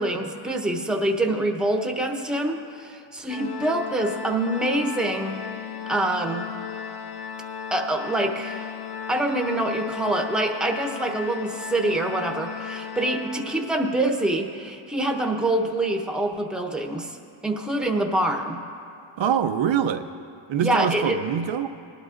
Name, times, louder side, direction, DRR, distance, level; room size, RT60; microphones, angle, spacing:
voice 1, 0.0-5.4 5.9-6.6 7.7-8.7 9.1-17.2 17.4-18.6 20.6-21.2, right 1 dB, ahead, 3 dB, 0.8 m, -25 dB
Organ, 3.3-14.0, left 7 dB, 50° left, 0.9 m, -36 dB
voice 2, 19.2-20.1 20.5-21.7, right 8 dB, 65° right, 7 dB, 0.6 m, -24 dB
20.0 x 12.0 x 2.5 m, 2.5 s
wide cardioid pair, 105°, 49 cm